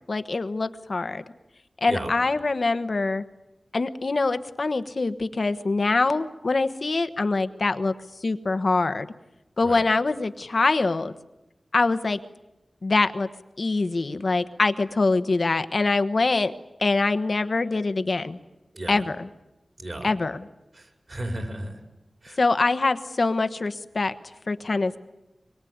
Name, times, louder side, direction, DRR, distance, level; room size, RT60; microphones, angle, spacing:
voice 1, 0.1-1.2 1.8-3.2 3.7-9.1 9.6-11.1 11.7-12.2 12.8-13.3 13.6-16.5 16.8-18.4 18.9-19.3 20.0-20.5 22.4-25.0, left 3 dB, 60° left, 11 dB, 1.2 m, -24 dB
voice 2, 19.8-20.1 20.8-21.8 22.2-22.4, right 1 dB, 50° right, 5 dB, 5.1 m, -34 dB
24.5 x 22.5 x 9.5 m, 0.96 s
wide cardioid pair, 80°, 0 cm